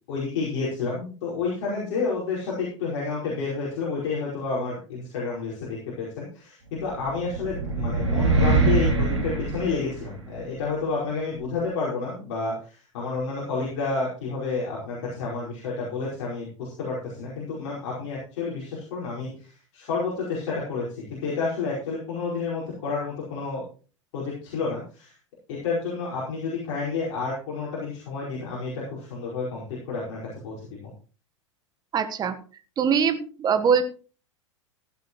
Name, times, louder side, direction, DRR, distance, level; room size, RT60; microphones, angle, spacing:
voice 1, 0.1-23.6 24.1-25.1 25.5-30.8, left 4 dB, 50° left, -5 dB, 5.1 m, -30 dB
sound 1, 6.9-10.4, right 3 dB, 70° right, 5.1 m, -23 dB
voice 2, 31.9-32.3 32.8-33.8, right 6 dB, 25° right, 11 dB, 1.4 m, -22 dB
15.5 x 11.5 x 3.1 m, 0.37 s
figure-of-eight pair, 85°, 16 cm